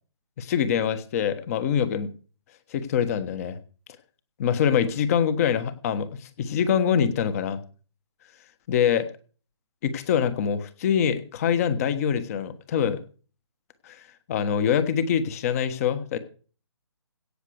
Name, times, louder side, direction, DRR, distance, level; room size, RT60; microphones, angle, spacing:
voice 1, 0.4-2.1 2.7-3.6 4.4-7.6 8.7-9.1 9.8-13.0 13.8-16.2, left 8 dB, 30° left, 14 dB, 1.3 m, -24 dB
16.5 x 6.8 x 6.5 m, 0.40 s
hypercardioid pair, 155°, 15 cm